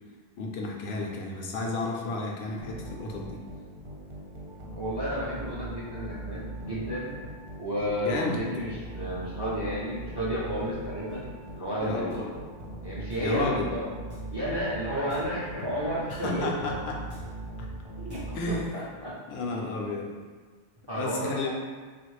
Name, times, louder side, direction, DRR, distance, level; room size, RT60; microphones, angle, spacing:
voice 1, 0.4-3.4 8.0-8.4 11.8-12.2 13.2-13.7 16.1-17.0 18.3-18.6 19.3-20.1 20.9-21.5, left 2 dB, 75° left, 0 dB, 0.8 m, -32 dB
sound 1, 2.6-19.0, right 1 dB, 60° right, 0.9 m, -40 dB
voice 2, 4.8-7.1 7.6-12.5 12.8-13.9 14.3-16.5 18.0-19.1 20.9-21.5, equal, 35° right, -7 dB, 0.4 m, -32 dB
3.1 x 2.4 x 3.1 m, 1.4 s
omnidirectional pair, 1.1 m